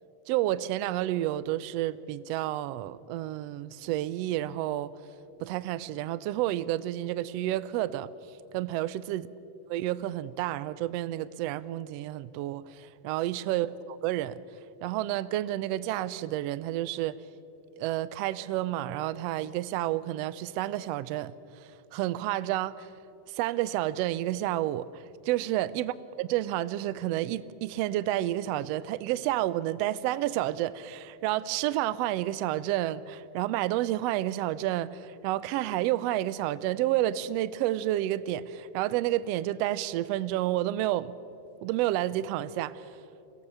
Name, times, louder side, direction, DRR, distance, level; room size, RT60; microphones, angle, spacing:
voice 1, 0.3-4.9 5.4-8.1 8.5-9.2 9.7-14.4 14.8-17.2 17.8-22.9 23.3-41.1 41.6-42.9, right 14 dB, 80° right, 1.5 m, -30 dB
23.5 x 16.5 x 6.8 m
omnidirectional pair, 3.4 m